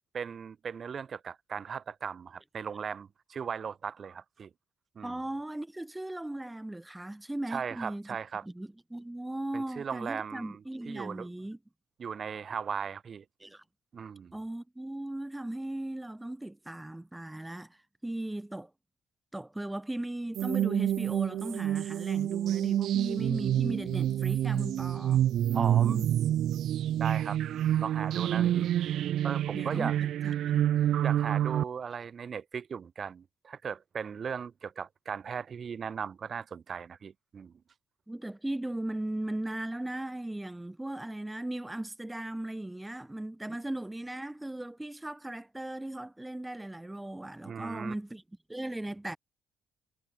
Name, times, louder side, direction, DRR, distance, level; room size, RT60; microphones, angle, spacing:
voice 1, 0.1-4.5 5.0-5.2 7.5-8.4 9.5-10.6 10.9-11.3 12.0-13.2 13.9-14.4 25.5-26.0 27.0-27.4 27.8-28.6 29.2-29.9 31.0-37.5 43.5-43.6 47.4-47.9, right 6 dB, 50° right, 1.8 m, -37 dB
voice 2, 5.0-8.2 8.4-11.6 13.4-13.6 14.3-18.7 19.3-26.1 28.4-28.7 29.5-30.7 38.1-48.2 48.5-49.2, right 1 dB, 10° right, 2.4 m, -37 dB
sound 1, 20.4-31.6, right 11 dB, 75° right, 0.7 m, -28 dB
cardioid pair, 90°, 0 cm